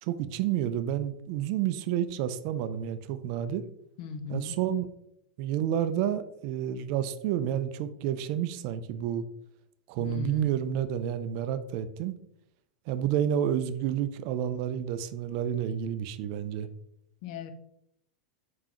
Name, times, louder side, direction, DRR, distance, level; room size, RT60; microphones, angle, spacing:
voice 1, 0.0-3.6 4.3-4.9 5.4-9.2 9.9-12.2 12.9-16.7, right 10 dB, 45° right, 12 dB, 0.3 m, -30 dB
voice 2, 4.0-4.5 10.0-10.5 17.2-17.5, left 5 dB, 50° left, 8 dB, 0.6 m, -37 dB
4.7 x 3.7 x 2.9 m, 0.76 s
figure-of-eight pair, 90°, 5 cm